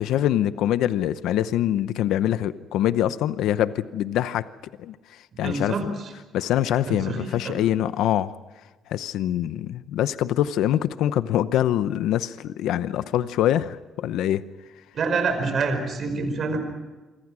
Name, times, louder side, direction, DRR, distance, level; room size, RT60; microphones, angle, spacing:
voice 1, 0.0-4.5 4.8-5.8 6.3-8.4 8.9-14.4, left 12 dB, 85° left, 14 dB, 0.7 m, -24 dB
voice 2, 5.4-5.9 6.9-7.5 14.9-16.6, right 4 dB, 45° right, 6 dB, 5.1 m, -26 dB
27.5 x 24.5 x 6.2 m, 1.2 s
cardioid pair, 160°, 0 cm